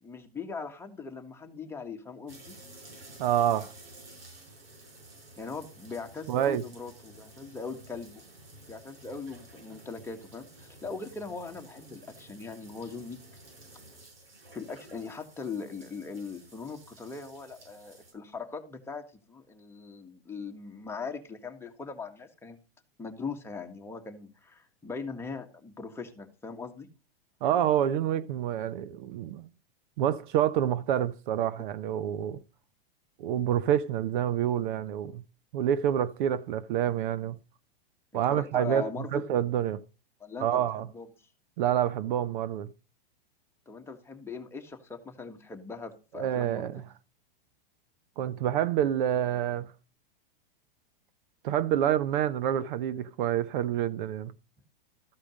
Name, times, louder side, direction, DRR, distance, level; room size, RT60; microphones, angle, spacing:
voice 1, 0.0-2.5 5.4-8.2 8.7-13.2 14.5-22.6 23.0-26.9 38.3-39.2 40.2-41.1 43.7-46.7, left 4 dB, 10° left, 1.6 m, -40 dB
sound 1, 2.3-18.1, right 2 dB, 85° right, 6.4 m, -52 dB
voice 2, 3.2-3.7 6.3-6.6 27.4-29.5 30.0-32.4 33.2-35.2 35.5-37.4 38.1-39.8 40.4-40.9 41.6-42.7 46.1-46.8 48.2-49.7 51.4-54.3, right 10 dB, 55° right, 0.7 m, -27 dB
13.5 x 5.0 x 6.3 m
hypercardioid pair, 130°, 30 cm